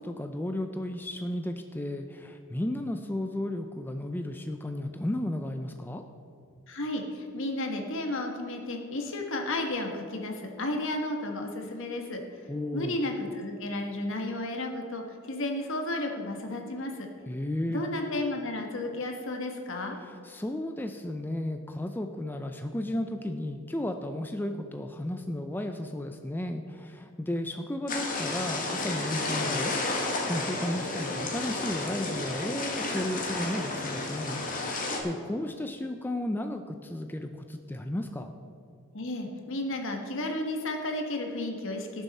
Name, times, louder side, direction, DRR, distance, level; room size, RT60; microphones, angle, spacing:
voice 1, 0.0-6.0 12.5-13.0 17.3-17.8 20.0-38.3, left 1 dB, 10° left, 6 dB, 0.4 m, -34 dB
voice 2, 6.7-12.2 12.7-17.1 17.7-20.0 38.9-42.0, left 1 dB, 60° left, 3 dB, 1.5 m, -33 dB
sound 1, 27.9-35.0, left 2 dB, 40° left, 1.7 m, -32 dB
17.5 x 7.1 x 4.2 m, 2.5 s
head